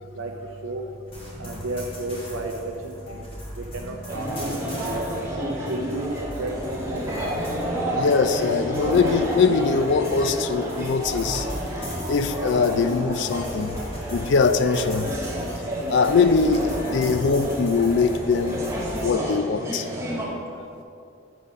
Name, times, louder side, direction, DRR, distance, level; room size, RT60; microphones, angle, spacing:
voice 1, 0.1-0.8 1.4-3.3 3.6-4.5 4.8-5.1 5.7-7.3, right 2 dB, 75° right, 0.6 m, -32 dB
sound 1, 1.1-19.1, equal, 25° left, 1.5 m, -38 dB
sound 2, 4.1-20.3, equal, 15° right, 0.9 m, -30 dB
voice 2, 7.9-11.5 12.1-15.1 15.9-19.9, left 4 dB, 55° left, 0.3 m, -22 dB
8.5 x 3.7 x 5.4 m
head